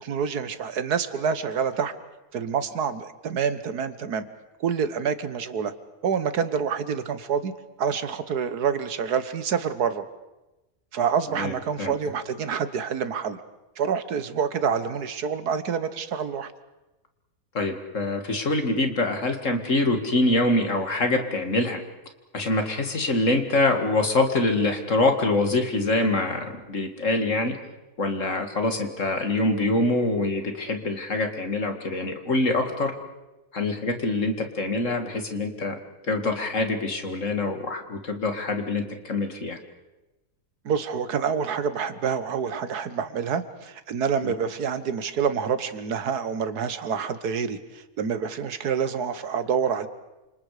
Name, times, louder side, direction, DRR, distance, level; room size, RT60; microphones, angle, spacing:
voice 1, 0.0-1.9 2.3-4.3 4.6-5.7 6.0-7.5 7.8-10.0 10.9-13.4 13.8-16.5 40.7-47.6 48.0-49.9, right 6 dB, 80° right, 12 dB, 1.7 m, -27 dB
voice 2, 11.3-11.9 17.5-21.8 22.3-27.6 28.0-32.9 33.5-35.8 36.1-39.6 44.2-44.3, left 2 dB, 55° left, 5 dB, 2.5 m, -25 dB
29.0 x 27.0 x 5.0 m, 1.0 s
omnidirectional pair, 1.6 m